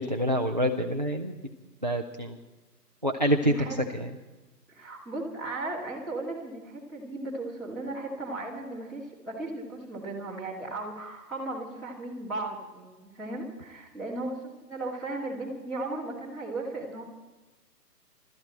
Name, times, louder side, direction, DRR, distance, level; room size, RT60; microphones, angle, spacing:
voice 1, 0.0-1.3 1.8-2.4 3.0-3.5 3.9-4.1, equal, 30° right, 5 dB, 0.5 m, -26 dB
voice 2, 3.4-3.9 4.7-17.0, right 2 dB, ahead, -6 dB, 2.3 m, -36 dB
24.5 x 13.5 x 4.4 m, 1.2 s
hypercardioid pair, 165°, 49 cm